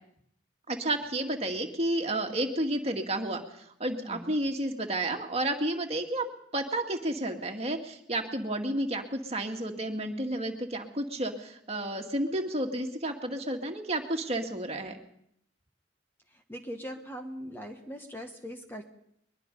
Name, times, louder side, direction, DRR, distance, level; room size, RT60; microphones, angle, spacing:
voice 1, 0.7-3.4 3.8-6.3 6.5-15.0, right 1 dB, 35° right, 3 dB, 2.0 m, -31 dB
voice 2, 4.1-4.4 16.3-18.9, equal, 10° left, 4 dB, 1.2 m, -41 dB
22.0 x 22.0 x 5.4 m, 0.72 s
head